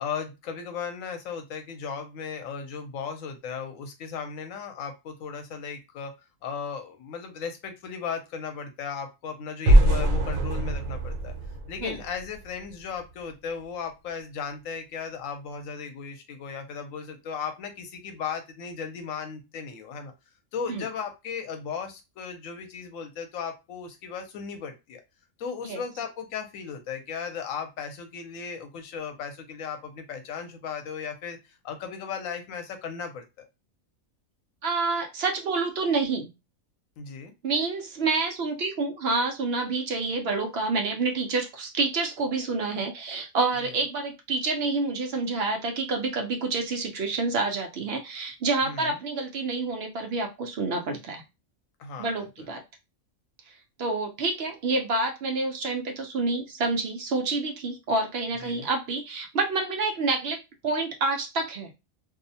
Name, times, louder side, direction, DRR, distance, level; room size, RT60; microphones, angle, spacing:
voice 1, 0.0-6.1 6.4-11.3 11.7-20.1 20.5-25.0 25.4-31.4 31.6-33.2 37.0-37.3 43.6-43.7 48.6-49.0 51.8-52.1 52.4-52.5 58.4-58.7, left 6 dB, 90° left, 6 dB, 1.0 m, -36 dB
sound 1, 9.7-12.7, right 1 dB, 80° right, 1.1 m, -22 dB
voice 2, 34.6-36.3 37.4-51.2 52.0-52.6 53.8-61.7, right 3 dB, 60° right, 3 dB, 0.7 m, -28 dB
2.6 x 2.0 x 2.7 m, 0.25 s
omnidirectional pair, 1.4 m